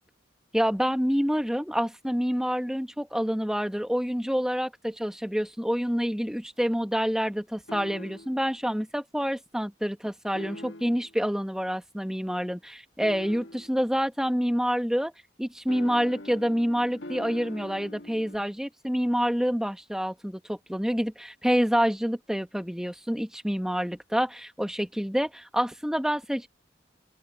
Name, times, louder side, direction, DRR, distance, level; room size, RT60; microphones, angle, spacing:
voice 1, 0.5-15.1 15.4-26.5, equal, 5° right, 1.3 m, -27 dB
sound 1, 7.7-8.5 10.3-11.1 13.0-13.8 15.7-18.4, left 1 dB, 85° left, 1.7 m, -42 dB
open air
head